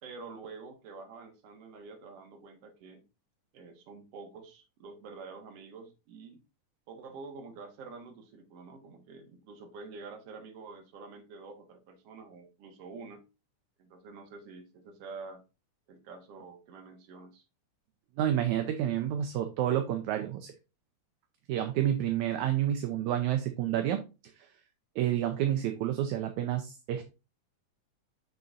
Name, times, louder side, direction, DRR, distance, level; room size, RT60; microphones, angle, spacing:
voice 1, 0.0-3.0 3.5-6.4 6.9-13.2 13.8-15.4 15.9-17.4, right 4 dB, 55° right, 5 dB, 2.1 m, -47 dB
voice 2, 18.2-20.5 21.5-24.0 25.0-27.0, right 11 dB, 75° right, 6 dB, 2.0 m, -29 dB
6.8 x 6.6 x 2.5 m, 0.28 s
omnidirectional pair, 3.7 m